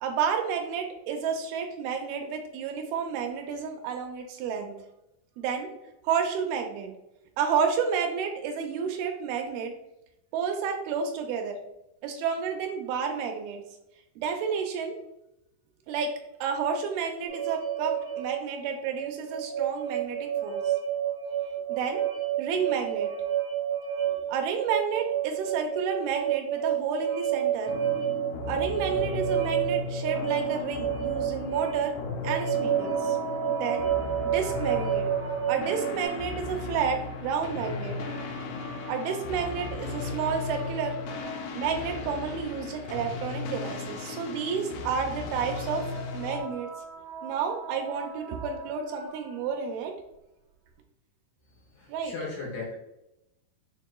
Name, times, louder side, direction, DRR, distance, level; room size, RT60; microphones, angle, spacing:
voice 1, 0.0-4.7 5.4-5.7 6.0-6.9 7.4-9.7 10.3-11.6 12.0-13.6 14.2-15.0 15.9-16.1 16.4-20.8 21.7-22.0 22.4-23.1 24.1-27.7 28.5-31.9 32.2-33.2 33.5-33.9 34.2-35.1 35.5-38.0 38.9-41.0 41.6-45.9 46.1-46.7 47.2-49.9 51.9-52.1, right 6 dB, 85° right, 3 dB, 2.4 m, -30 dB
sound 1, 17.3-36.0, right 10 dB, 50° left, 1.3 m, -30 dB
sound 2, 27.7-46.4, left 4 dB, 85° left, 2.6 m, -36 dB
sound 3, 31.9-35.9 37.4-41.9 45.1-49.5, right 2 dB, 65° right, 2.4 m, -42 dB
voice 2, 51.7-52.7, left 3 dB, 65° left, -5 dB, 2.4 m, -36 dB
6.6 x 2.8 x 2.2 m, 0.87 s
omnidirectional pair, 4.5 m